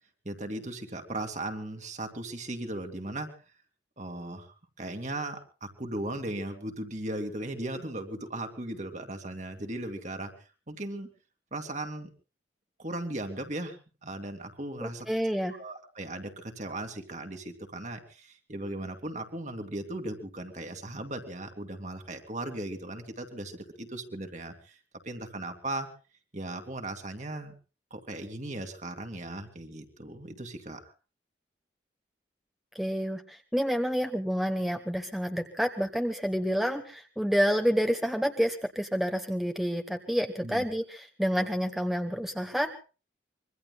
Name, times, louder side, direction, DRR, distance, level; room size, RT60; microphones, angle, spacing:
voice 1, 0.2-3.3 4.0-11.1 11.5-12.1 12.8-15.1 15.6-25.9 26.3-27.5 27.9-30.8 40.4-40.6, right 1 dB, 40° right, 5 dB, 2.5 m, -37 dB
voice 2, 14.8-15.6 32.7-42.7, equal, ahead, 6 dB, 1.0 m, -29 dB
25.5 x 23.0 x 2.3 m, 0.35 s
head